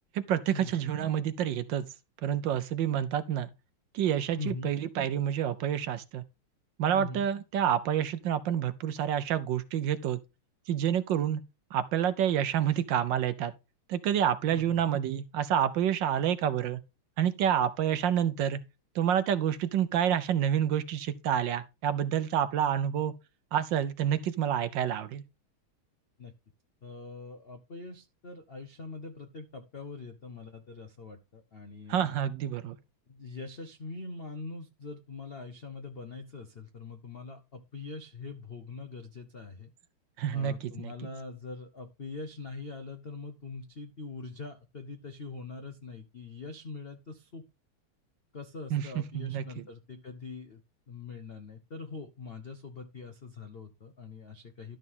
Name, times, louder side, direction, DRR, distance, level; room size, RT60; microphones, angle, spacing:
voice 1, 0.1-1.8 2.2-3.5 3.9-6.2 6.8-10.2 10.7-11.4 11.7-13.5 13.9-16.8 17.2-18.6 18.9-23.1 23.5-25.2 31.9-32.8 40.2-40.9 48.7-48.9 49.1-49.6, right 9 dB, 70° right, 1.2 m, -28 dB
voice 2, 4.4-4.7 6.9-7.3 14.5-14.8 26.2-26.3 26.8-32.2 33.1-39.7 40.3-47.5 48.3-50.6 50.9-54.8, left 4 dB, 70° left, 0.5 m, -43 dB
12.0 x 6.2 x 3.7 m
omnidirectional pair, 2.4 m